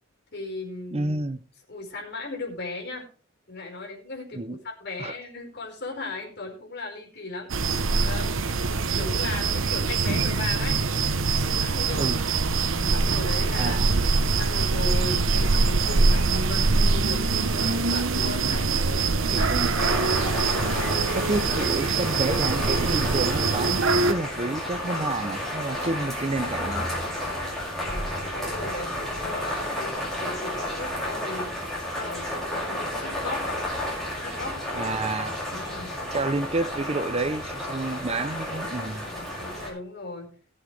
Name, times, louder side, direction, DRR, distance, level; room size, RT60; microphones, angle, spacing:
voice 1, 0.3-1.2 1.7-3.1 3.5-7.7 8.0-8.4 8.9-10.8 11.4-12.1 12.7-13.8 14.4-20.1 27.8-33.4 34.1-34.6 35.5-35.9 39.0-40.3, left 3 dB, 55° left, 4.8 m, -37 dB
voice 2, 0.9-1.4 4.3-4.6 5.0-5.1 12.0-12.2 13.6-13.9 18.5-18.7 19.3-19.7 21.1-26.9 34.8-35.4 36.1-39.1, right 2 dB, 30° right, 0.7 m, -29 dB
sound 1, 7.5-24.1, right 3 dB, 75° right, 1.0 m, -23 dB
sound 2, 19.7-39.7, left 1 dB, ahead, 5.8 m, -31 dB
19.0 x 7.6 x 3.4 m
head